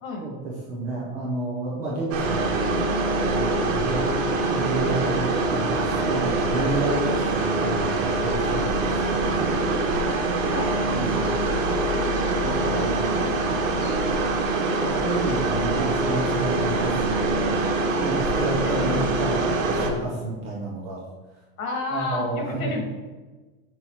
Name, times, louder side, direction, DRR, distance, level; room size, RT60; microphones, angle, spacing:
voice 1, 0.2-2.6 3.2-9.5 10.9-11.4 12.4-13.1 14.8-17.6 18.0-21.0 21.9-22.8, right 2 dB, 15° right, -6 dB, 0.4 m, -31 dB
sound 1, 2.1-19.9, right 2 dB, 75° right, 1.2 m, -24 dB
voice 2, 12.6-14.0 18.6-19.1 21.6-22.8, left 3 dB, 80° left, 2 dB, 1.9 m, -32 dB
5.6 x 4.1 x 4.5 m, 1.3 s
supercardioid pair, 175°, 40 cm